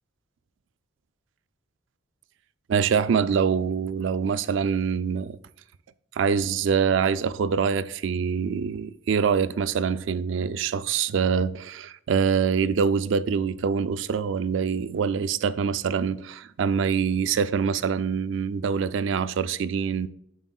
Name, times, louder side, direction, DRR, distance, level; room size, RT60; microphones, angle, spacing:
voice 1, 2.7-5.4 6.2-20.1, right 6 dB, 65° right, 0.3 m, -25 dB
9.1 x 7.0 x 2.3 m
head